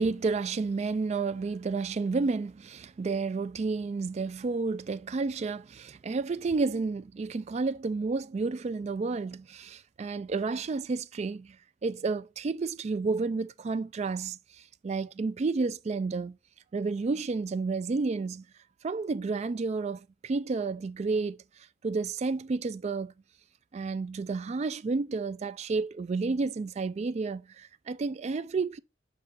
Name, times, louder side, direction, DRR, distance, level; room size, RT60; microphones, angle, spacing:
voice 1, 0.0-11.6 11.8-16.4 16.7-18.5 18.8-21.4 21.8-23.1 23.7-28.8, right 4 dB, 35° right, 0.3 m, -31 dB
5.5 x 5.3 x 5.2 m
head